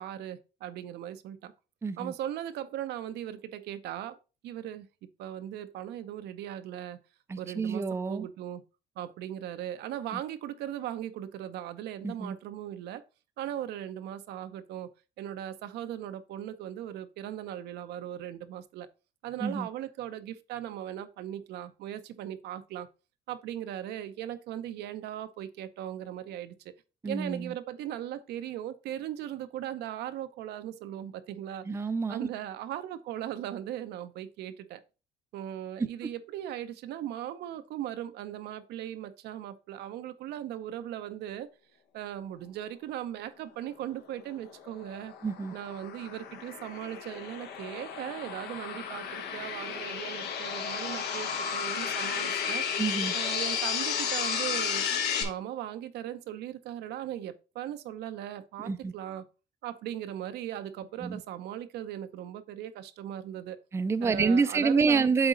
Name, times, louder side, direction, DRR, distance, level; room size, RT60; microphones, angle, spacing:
voice 1, 0.0-1.5 2.0-4.2 4.4-4.9 5.2-7.0 7.4-8.6 9.0-13.0 13.4-14.9 15.2-18.9 19.2-22.9 23.3-26.5 27.0-31.7 32.1-34.8 35.3-41.5 41.9-45.1 45.5-52.7 53.1-54.9 55.2-59.3 59.6-63.6 64.0-65.1, right 11 dB, 80° right, 0.7 m, -38 dB
voice 2, 1.8-2.1 7.3-8.3 10.1-10.2 12.0-12.4 19.4-19.7 27.0-27.5 31.6-32.3 35.8-35.9 45.2-45.5 52.8-53.1 58.6-58.9 61.0-61.2 63.7-65.3, right 4 dB, 15° right, 0.4 m, -28 dB
sound 1, 44.4-55.2, left 7 dB, 80° left, 1.3 m, -33 dB
7.8 x 4.0 x 3.8 m
cardioid pair, 110°, 17 cm